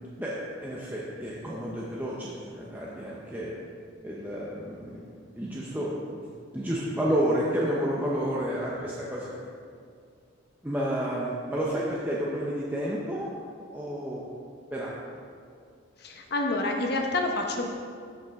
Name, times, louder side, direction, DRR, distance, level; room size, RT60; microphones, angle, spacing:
voice 1, 0.0-3.5 4.0-6.3 6.5-9.5 10.6-13.4 13.7-14.2 14.7-15.0, equal, 10° right, -6 dB, 0.7 m, -31 dB
voice 2, 16.0-17.7, left 2 dB, 50° left, 2 dB, 1.0 m, -28 dB
14.0 x 5.5 x 3.6 m, 2.3 s
head